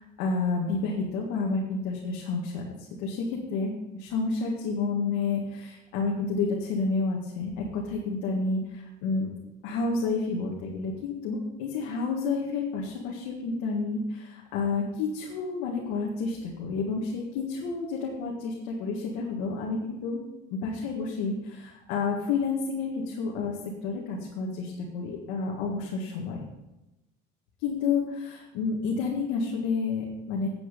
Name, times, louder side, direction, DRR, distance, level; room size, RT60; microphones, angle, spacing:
voice 1, 0.0-9.3 9.6-20.2 20.5-26.4 27.6-30.5, left 4 dB, 80° left, -2 dB, 1.9 m, -30 dB
10.5 x 8.4 x 5.3 m, 1.0 s
cardioid pair, 130°, 20 cm